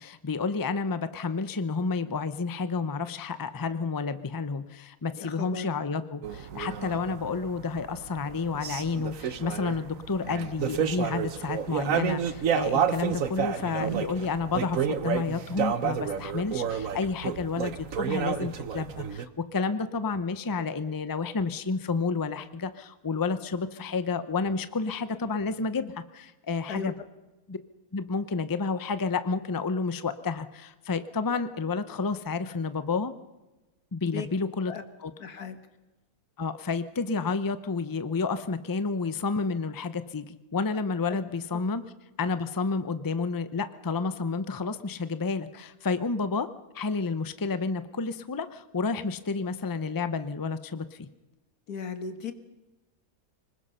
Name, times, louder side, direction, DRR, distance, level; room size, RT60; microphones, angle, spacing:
voice 1, 0.0-26.9 27.5-27.6 27.9-33.1 33.9-34.7 35.0-35.1 36.4-41.9 42.2-46.5 46.7-51.1, left 4 dB, 20° left, 12 dB, 0.6 m, -30 dB
voice 2, 5.2-5.7 26.7-26.9 34.0-34.3 34.7-34.8 35.2-35.6 41.1-41.2 41.5-41.6 51.7-52.3, left 5 dB, 85° left, 9 dB, 2.0 m, -36 dB
sound 1, 6.2-19.3, right 7 dB, 65° right, 1.3 m, -30 dB
25.0 x 20.5 x 5.6 m, 1.1 s
omnidirectional pair, 1.6 m